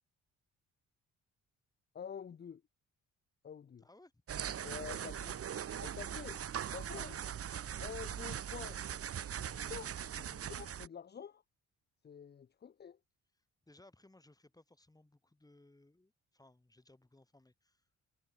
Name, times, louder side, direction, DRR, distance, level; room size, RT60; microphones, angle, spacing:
voice 1, 1.9-2.6 3.4-3.8 4.6-5.4 5.8-7.2 7.8-8.8 9.3-11.4 12.0-13.0, left 7 dB, 35° left, 0.8 m, -48 dB
voice 2, 3.8-4.1 13.7-17.8, left 2 dB, 10° left, 7.2 m, -63 dB
sound 1, 4.3-10.9, right 9 dB, 50° right, 1.3 m, -41 dB
cardioid pair, 90°, 30 cm